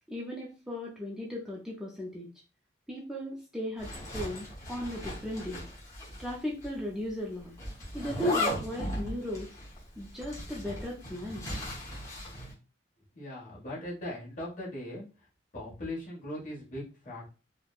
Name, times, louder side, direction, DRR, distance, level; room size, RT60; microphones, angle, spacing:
voice 1, 0.1-2.3 2.9-5.7 6.2-7.5 7.9-9.5 10.0-11.5, left 1 dB, 5° right, -4 dB, 0.4 m, -36 dB
Zipper (clothing), 3.8-6.4 6.6-6.7 7.6-12.5, left 1 dB, 20° left, 0.9 m, -37 dB
voice 2, 13.1-15.0 15.5-17.3, left 1 dB, 45° left, -5 dB, 1.2 m, -39 dB
3.2 x 2.1 x 2.3 m, 0.33 s
head